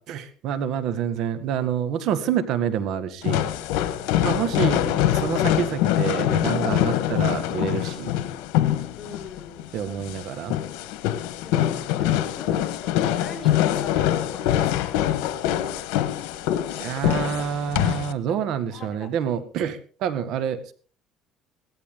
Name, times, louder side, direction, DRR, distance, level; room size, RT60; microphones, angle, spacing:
voice 1, 0.0-3.5 4.2-8.1 9.7-10.6 16.8-20.7, right 8 dB, 65° right, 11 dB, 1.7 m, -27 dB
sound 1, 3.2-18.1, left 12 dB, 90° left, 1.3 m, -24 dB
voice 2, 8.9-9.8 11.4-15.5 17.9-18.0 18.3-18.4 18.7-19.4, left 5 dB, 35° left, 1 dB, 5.5 m, -42 dB
17.5 x 14.0 x 3.8 m, 0.41 s
cardioid pair, 120°, 0 cm